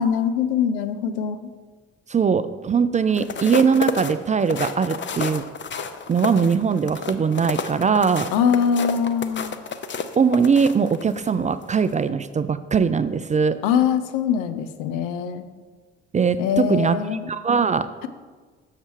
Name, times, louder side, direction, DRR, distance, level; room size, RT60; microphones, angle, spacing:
voice 1, 0.0-1.5 8.3-9.6 13.6-15.4 16.4-17.2, left 7 dB, 75° left, 11 dB, 0.6 m, -22 dB
voice 2, 2.1-5.5 6.1-8.3 10.2-13.6 16.1-17.0 17.3-18.1, right 6 dB, 25° right, 12 dB, 0.4 m, -21 dB
sound 1, 3.1-11.3 11.7-11.9, left 6 dB, 35° left, 0.7 m, -30 dB
6.6 x 6.5 x 4.6 m, 1.4 s
hypercardioid pair, 55°, 33 cm